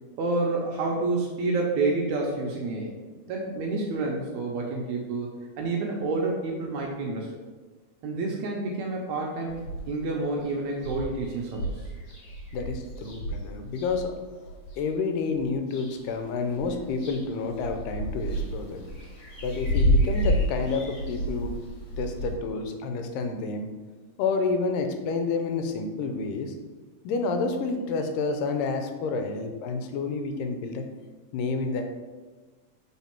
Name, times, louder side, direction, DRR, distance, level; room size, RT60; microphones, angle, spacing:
voice 1, 0.2-3.0 3.3-5.3 5.6-7.3 8.0-11.7, right 3 dB, 75° right, -1 dB, 1.9 m, -29 dB
sound 1, 9.5-10.1 10.5-10.6 10.8-14.8 15.3-16.2 16.5-22.3, equal, 50° left, 1.7 m, -30 dB
voice 2, 12.5-14.2 14.4-18.9 19.4-21.5 22.0-23.7 24.2-26.5 27.0-30.8 31.3-31.9, left 4 dB, 90° left, 6 dB, 2.3 m, -29 dB
7.3 x 3.9 x 4.4 m, 1.3 s
omnidirectional pair, 3.8 m